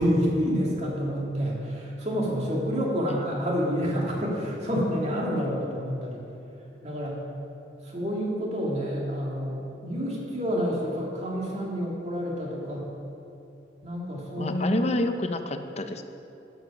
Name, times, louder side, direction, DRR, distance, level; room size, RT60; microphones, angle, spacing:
voice 1, 0.0-6.2 6.8-7.3 7.8-12.9 13.8-14.9, equal, 40° right, -3 dB, 2.2 m, -28 dB
voice 2, 14.4-16.0, left 2 dB, 35° left, 7 dB, 0.6 m, -28 dB
12.0 x 7.3 x 5.9 m, 2.8 s
head